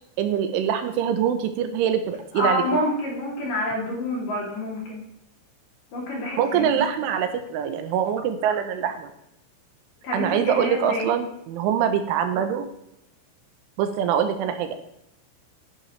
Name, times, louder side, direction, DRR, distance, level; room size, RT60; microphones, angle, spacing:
voice 1, 0.2-2.6 6.4-9.1 10.1-12.7 13.8-14.8, right 8 dB, 80° right, 7 dB, 3.2 m, -24 dB
voice 2, 2.4-5.0 5.9-6.7 10.0-11.1, left 1 dB, 45° left, -3 dB, 4.1 m, -27 dB
11.5 x 11.5 x 3.2 m, 0.82 s
omnidirectional pair, 5.8 m